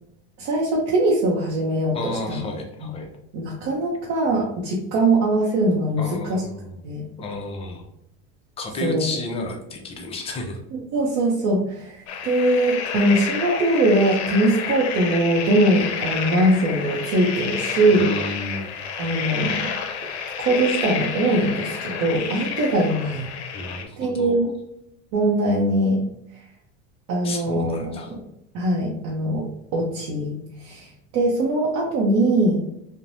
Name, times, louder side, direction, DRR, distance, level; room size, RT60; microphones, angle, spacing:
voice 1, 0.4-2.4 2.8-2.9 3.3-6.4 6.8-7.0 8.8-9.0 10.7-18.1 19.0-19.6 20.4-23.3 24.0-24.5 25.1-26.0 27.1-27.9 28.5-30.9 31.1-32.6, right 1 dB, 50° right, -3 dB, 0.7 m, -21 dB
voice 2, 1.9-3.1 6.0-6.8 7.2-7.8 8.6-10.6 18.0-18.7 23.5-24.5 27.2-28.2, left 2 dB, 20° left, 1 dB, 0.5 m, -32 dB
sound 1, 12.1-23.8, left 6 dB, 75° left, 0.6 m, -30 dB
3.2 x 2.1 x 2.6 m, 0.79 s
supercardioid pair, 125°, 33 cm